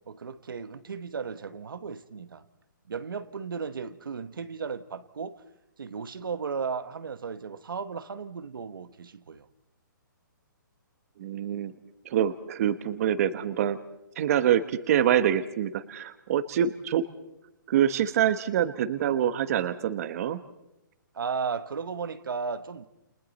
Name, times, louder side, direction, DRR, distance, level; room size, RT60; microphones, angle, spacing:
voice 1, 0.1-2.4 2.9-5.4 5.8-9.5 21.1-22.9, right 5 dB, 85° right, 1.2 m, -35 dB
voice 2, 11.2-11.7 12.0-13.8 14.2-17.0 17.7-20.4, right 10 dB, 45° right, 1.1 m, -25 dB
30.0 x 29.5 x 4.2 m
hypercardioid pair, 150°, 11 cm